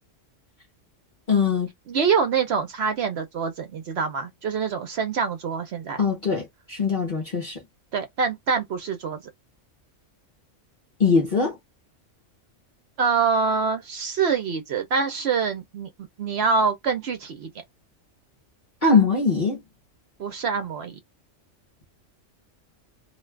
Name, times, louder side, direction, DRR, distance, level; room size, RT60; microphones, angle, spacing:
voice 1, 1.3-1.7 6.0-7.6 11.0-11.6 18.8-19.6, left 4 dB, 45° left, 0.9 m, -21 dB
voice 2, 1.9-6.0 7.9-9.2 13.0-17.5 20.2-21.0, right 5 dB, 65° right, 0.8 m, -25 dB
2.5 x 2.3 x 3.1 m
omnidirectional pair, 1.3 m